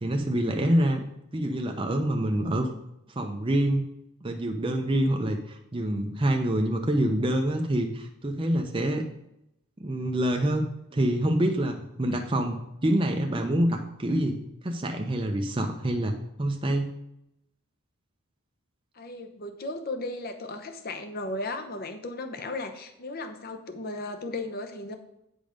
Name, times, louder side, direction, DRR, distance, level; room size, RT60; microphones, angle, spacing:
voice 1, 0.0-1.0 1.3-2.7 3.2-3.8 4.2-9.0 9.8-16.9, right 1 dB, 25° right, 3 dB, 0.6 m, -26 dB
voice 2, 2.4-2.8 8.8-9.1 18.9-25.0, left 2 dB, 45° left, 7 dB, 0.8 m, -36 dB
9.0 x 5.3 x 5.1 m, 0.83 s
head